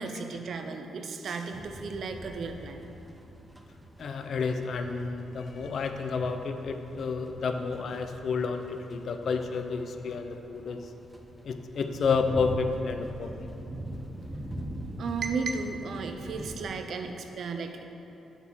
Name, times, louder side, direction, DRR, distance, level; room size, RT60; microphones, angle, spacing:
voice 1, 0.0-2.8 15.0-17.9, right 4 dB, 65° right, 5 dB, 0.6 m, -34 dB
sound 1, 1.5-16.8, right 1 dB, 10° right, 0.7 m, -43 dB
voice 2, 4.0-10.9 11.4-13.5, left 5 dB, 65° left, 6 dB, 0.5 m, -30 dB
7.1 x 4.1 x 6.1 m, 3.0 s
supercardioid pair, 60°, 0 cm